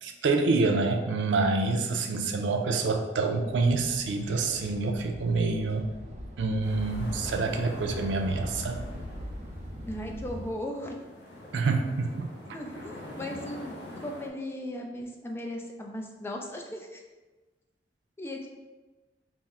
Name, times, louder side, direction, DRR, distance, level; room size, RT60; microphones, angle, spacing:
voice 1, 0.0-5.9 6.4-8.8 11.5-12.3, right 3 dB, 90° right, 4 dB, 0.4 m, -27 dB
sound 1, 3.5-10.5, equal, 40° right, 0.5 m, -41 dB
sound 2, 6.6-14.3, left 1 dB, 70° left, 0.6 m, -44 dB
voice 2, 9.9-11.0 12.5-17.0 18.2-18.5, left 1 dB, 15° left, 1 dB, 0.4 m, -37 dB
3.5 x 2.0 x 4.1 m, 1.2 s
head